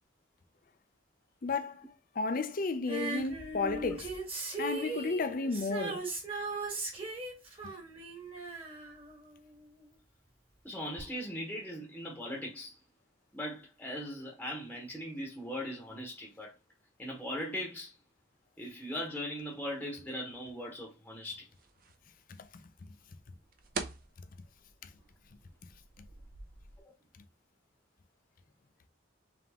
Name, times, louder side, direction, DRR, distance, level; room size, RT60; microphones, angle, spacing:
voice 1, 1.4-1.8 2.1-4.2 4.6-6.1 7.6-7.7 22.4-22.6 24.8-24.9 26.0-26.1, left 3 dB, 45° left, 0.5 m, -33 dB
Female singing, 2.9-9.8 11.0-11.1, right 3 dB, 30° right, 1.4 m, -39 dB
voice 2, 10.6-12.8 13.3-16.5 17.0-17.9 18.6-21.5 26.8-26.9, equal, 10° left, 0.9 m, -39 dB
sound 1, 21.5-26.8, right 4 dB, 50° right, 0.6 m, -46 dB
3.5 x 3.5 x 3.5 m
head